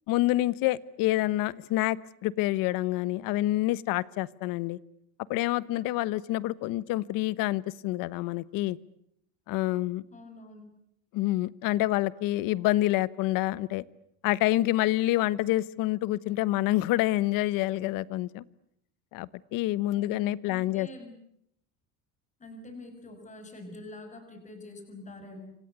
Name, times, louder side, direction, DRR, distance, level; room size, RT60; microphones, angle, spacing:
voice 1, 0.1-4.8 5.3-8.8 9.5-10.0 11.1-13.8 14.2-18.4 19.1-20.9, left 16 dB, 55° left, 19 dB, 1.2 m, -27 dB
voice 2, 10.1-10.7 19.9-21.1 22.4-25.5, left 2 dB, 20° left, 6 dB, 6.6 m, -46 dB
28.0 x 25.5 x 8.2 m, 0.73 s
cardioid pair, 155°, 39 cm